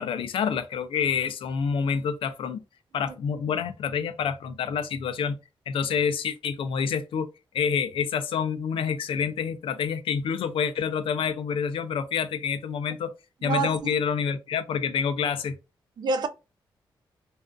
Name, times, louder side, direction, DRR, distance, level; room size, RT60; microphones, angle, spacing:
voice 1, 0.0-2.6 2.9-5.3 5.7-7.3 7.5-13.1 13.4-15.5, left 6 dB, 85° left, 0.4 m, -27 dB
voice 2, 13.4-13.9 16.0-16.3, right 4 dB, 50° right, 0.4 m, -27 dB
2.4 x 2.4 x 2.2 m
wide cardioid pair, 140°, 9 cm